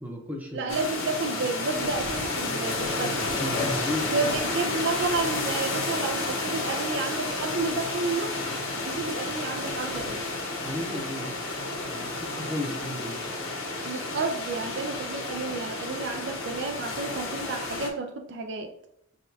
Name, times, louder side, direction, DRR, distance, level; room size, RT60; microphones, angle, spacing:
voice 1, 0.0-0.7 3.4-4.1 10.6-11.3 11.9-13.3, left 1 dB, 10° right, 0.6 m, -34 dB
voice 2, 0.5-3.2 4.1-8.4 8.9-10.3 13.9-18.7, right 3 dB, 55° right, 0.4 m, -31 dB
sound 1, 0.7-17.9, left 2 dB, 70° left, 0.8 m, -31 dB
6.2 x 2.3 x 2.6 m
head